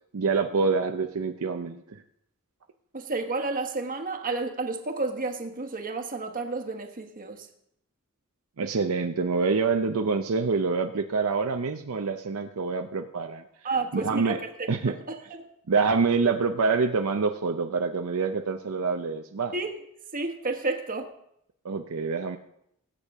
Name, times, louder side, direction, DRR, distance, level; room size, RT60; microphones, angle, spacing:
voice 1, 0.1-2.0 8.6-13.4 13.9-14.4 14.7-14.9 15.7-19.5 21.6-22.4, right 4 dB, 75° right, 6 dB, 0.6 m, -26 dB
voice 2, 2.9-7.5 13.6-14.9 19.5-19.7 20.1-21.1, right 3 dB, 40° right, 5 dB, 1.2 m, -31 dB
19.5 x 8.4 x 3.6 m, 0.74 s
head